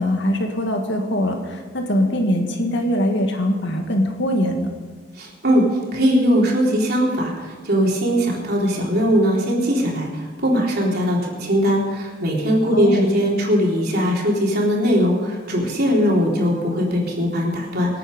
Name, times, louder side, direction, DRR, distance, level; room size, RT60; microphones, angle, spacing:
voice 1, 0.0-4.7 12.7-13.1, equal, 65° left, 3 dB, 2.1 m, -22 dB
voice 2, 5.2-5.6 5.9-18.0, equal, 55° right, -2 dB, 3.8 m, -20 dB
26.0 x 8.9 x 5.4 m, 1.5 s
head